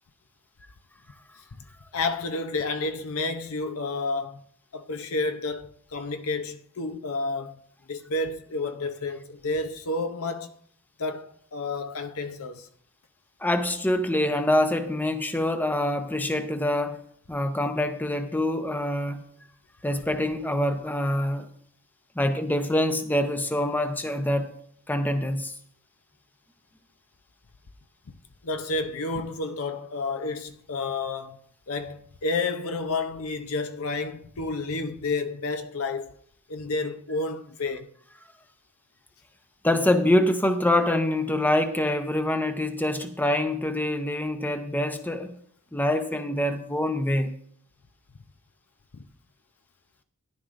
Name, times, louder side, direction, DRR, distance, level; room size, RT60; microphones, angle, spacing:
voice 1, 1.9-4.4 4.7-7.6 7.9-10.5 11.0-12.7 28.4-31.4 31.7-36.2 36.5-37.9 48.9-49.0, left 3 dB, 65° left, 0.7 m, -30 dB
voice 2, 13.4-17.0 17.3-19.2 19.8-21.5 22.2-24.5 24.9-25.5 39.6-45.4 45.7-47.3, left 1 dB, 10° left, 0.7 m, -25 dB
13.0 x 11.0 x 2.6 m
head